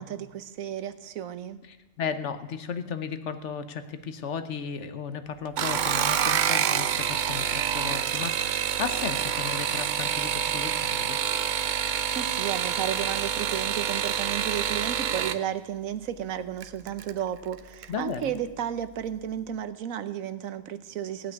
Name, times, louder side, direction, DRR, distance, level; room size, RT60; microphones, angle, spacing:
voice 1, 0.0-1.6 11.8-21.3, right 10 dB, 80° right, 13 dB, 1.2 m, -33 dB
voice 2, 1.7-11.2 17.9-18.3, left 6 dB, 60° left, 10 dB, 1.1 m, -35 dB
sound 1, 5.5-15.4 16.6-17.1 17.5-17.9 18.2-18.3, right 8 dB, 60° right, 0.5 m, -27 dB
16.5 x 6.0 x 9.5 m, 1.1 s
omnidirectional pair, 1.4 m